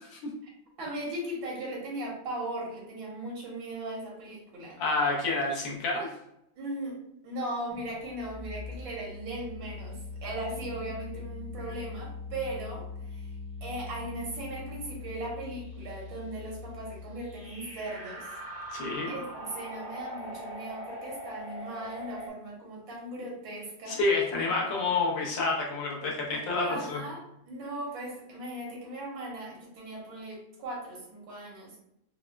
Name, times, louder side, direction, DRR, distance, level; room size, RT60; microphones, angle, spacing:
voice 1, 0.8-4.8 6.6-7.0 7.2-13.3 13.6-18.3 19.1-24.0 26.6-31.8, right 1 dB, 80° right, -3 dB, 1.7 m, -38 dB
voice 2, 4.8-6.1 18.7-19.2 23.9-27.0, left 3 dB, 75° left, -2 dB, 1.4 m, -28 dB
sound 1, 7.7-22.3, left 2 dB, 20° right, 0.3 m, -41 dB
4.2 x 2.0 x 2.2 m, 0.81 s
omnidirectional pair, 2.0 m